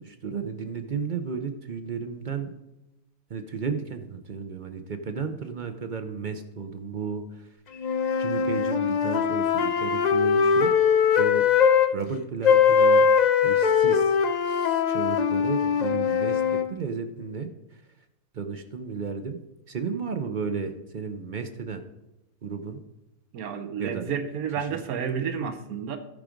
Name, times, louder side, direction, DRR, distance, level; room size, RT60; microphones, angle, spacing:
voice 1, 0.0-2.5 3.3-7.5 7.8-10.7 11.2-11.4 11.9-13.1 13.4-14.2 14.4-17.8 18.3-19.4 19.7-21.8 22.4-22.8 23.8-24.1 24.6-24.8, right 5 dB, 55° right, 7 dB, 0.5 m, -34 dB
sound 1, 7.8-11.9 12.4-16.7, left 6 dB, 70° left, 0.4 m, -21 dB
voice 2, 23.3-26.0, right 7 dB, 75° right, 8 dB, 1.3 m, -30 dB
12.5 x 4.9 x 5.1 m, 0.93 s
omnidirectional pair, 1.6 m